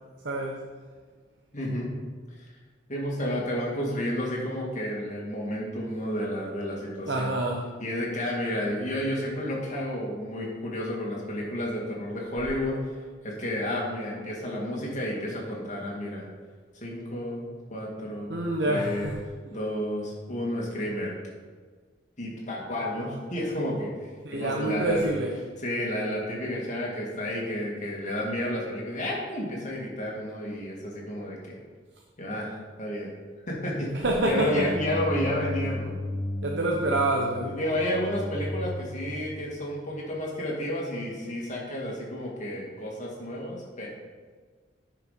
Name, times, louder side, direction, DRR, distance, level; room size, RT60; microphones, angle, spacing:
voice 1, 0.2-0.7 7.0-7.6 18.3-19.2 24.2-25.3 33.9-34.7 36.4-37.6, right 1 dB, 70° right, 0 dB, 1.0 m, -27 dB
voice 2, 1.5-1.9 2.9-7.3 7.8-13.0 13.2-16.3 16.8-18.3 18.6-19.1 19.5-21.1 22.2-25.1 25.6-31.6 32.2-33.1 33.5-35.9 37.4-43.9, left 1 dB, 40° left, -3 dB, 2.4 m, -31 dB
sound 1, 34.0-39.9, left 1 dB, 5° right, 3.2 m, -35 dB
10.0 x 5.9 x 5.2 m, 1.5 s
head